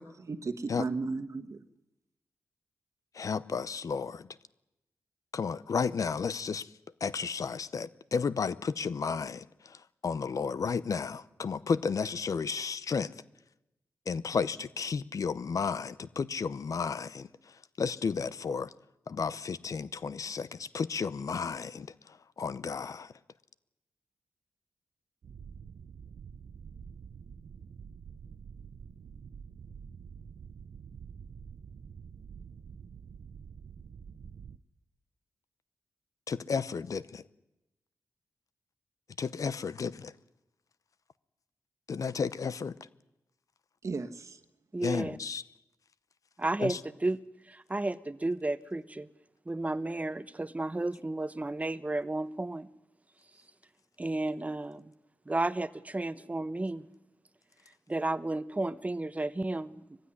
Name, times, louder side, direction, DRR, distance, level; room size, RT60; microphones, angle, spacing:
voice 1, 0.0-1.6 43.8-44.4, right 4 dB, 55° right, 1.5 m, -35 dB
voice 2, 3.2-4.2 5.3-6.7 7.0-9.4 10.0-13.1 14.1-17.3 17.8-18.7 19.1-20.5 20.7-21.9 22.4-23.1 36.3-37.2 39.2-40.1 41.9-42.7 44.8-45.4 46.6-46.8, left 5 dB, 60° left, 0.8 m, -32 dB
sound 1, 25.2-34.6, right 6 dB, 75° right, 0.8 m, -48 dB
voice 3, 44.7-45.2 46.4-47.2 47.5-49.1 49.5-52.7 54.0-54.9 55.3-56.8 57.9-59.8, right 2 dB, 20° right, 1.0 m, -32 dB
21.5 x 15.5 x 9.9 m
cardioid pair, 60°, 6 cm